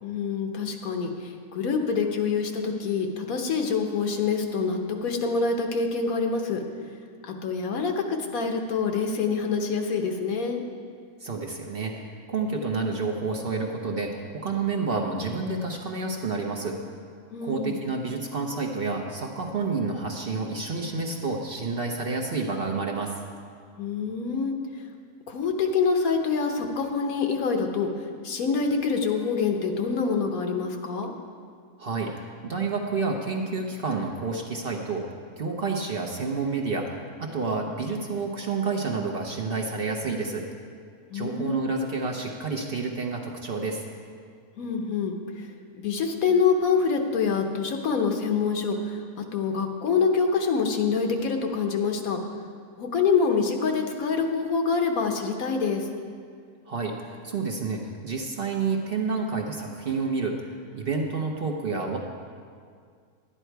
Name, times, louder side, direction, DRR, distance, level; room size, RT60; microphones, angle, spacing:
voice 1, 0.0-6.6 7.2-10.6 17.3-17.8 23.8-24.6 25.3-31.1 41.1-41.9 44.6-45.5 45.8-52.2 52.8-55.9, left 5 dB, 70° left, 4 dB, 1.4 m, -26 dB
voice 2, 11.2-16.8 17.4-23.1 31.8-32.1 32.4-40.4 41.1-43.8 56.7-62.0, right 4 dB, 45° right, 1 dB, 0.9 m, -29 dB
11.5 x 10.0 x 4.6 m, 2.1 s
omnidirectional pair, 1.6 m